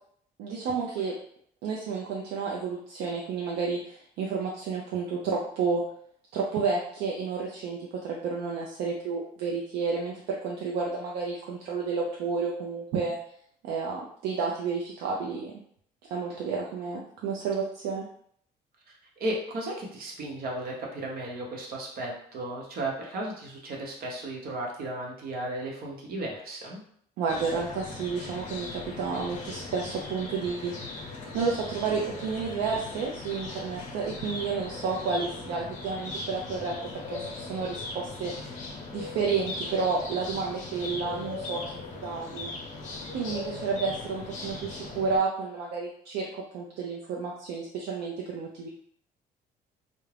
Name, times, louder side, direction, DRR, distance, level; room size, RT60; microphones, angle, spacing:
voice 1, 0.4-1.1 1.6-5.8 6.3-7.8 8.0-13.2 13.6-15.5 16.1-18.0 27.2-30.7 31.3-38.3 38.9-41.6 42.0-42.5 43.1-48.7, right 5 dB, 85° right, -2 dB, 0.4 m, -31 dB
voice 2, 19.2-26.8, right 1 dB, 60° right, -1 dB, 0.8 m, -34 dB
sound 1, 27.3-45.2, left 3 dB, 45° left, 0.6 m, -39 dB
2.4 x 2.1 x 3.2 m, 0.65 s
cardioid pair, 110°, 17 cm